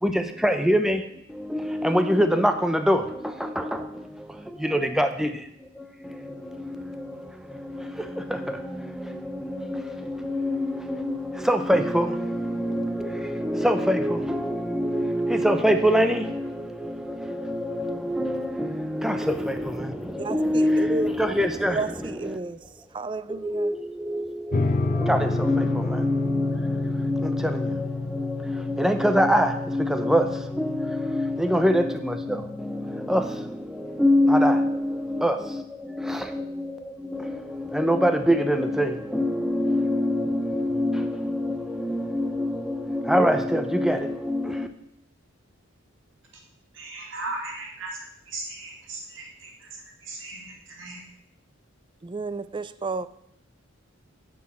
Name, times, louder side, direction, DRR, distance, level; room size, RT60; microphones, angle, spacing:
voice 1, 0.0-22.5 23.3-44.7, equal, ahead, 0.8 m, -25 dB
voice 2, 20.2-21.1 21.7-22.6 22.9-23.7 52.0-53.1, right 3 dB, 25° right, 0.4 m, -31 dB
sound 1, 24.5-33.5, left 3 dB, 40° left, 0.4 m, -30 dB
voice 3, 46.8-48.0 48.3-49.5 50.0-51.0, right 2 dB, 65° right, 3.6 m, -37 dB
10.0 x 6.3 x 8.7 m
head